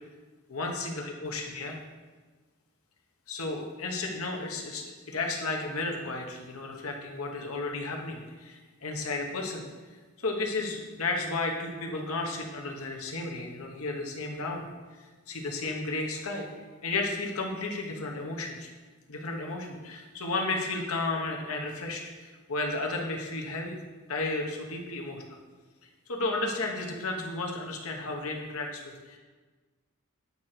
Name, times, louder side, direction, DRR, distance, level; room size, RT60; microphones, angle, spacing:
voice 1, 0.5-1.8 3.3-9.6 10.2-14.7 15.0-18.7 19.1-23.8 24.1-25.4 26.1-29.2, left 2 dB, 85° left, 1 dB, 1.1 m, -33 dB
8.4 x 5.0 x 4.4 m, 1.4 s
head